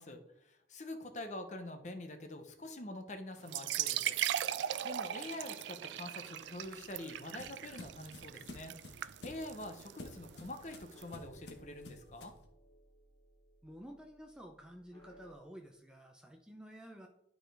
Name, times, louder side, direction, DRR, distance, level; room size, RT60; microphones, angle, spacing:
voice 1, 0.0-4.2 4.6-12.3, left 1 dB, 40° left, 6 dB, 0.8 m, -46 dB
sound 1, 3.4-11.0, right 11 dB, 80° right, 0.3 m, -39 dB
sound 2, 6.4-12.5, left 2 dB, 75° left, 1.2 m, -52 dB
sound 3, 10.1-15.3, equal, 15° left, 1.2 m, -62 dB
voice 2, 13.6-17.1, equal, 5° right, 2 dB, 0.6 m, -52 dB
11.5 x 3.9 x 3.4 m, 0.82 s
head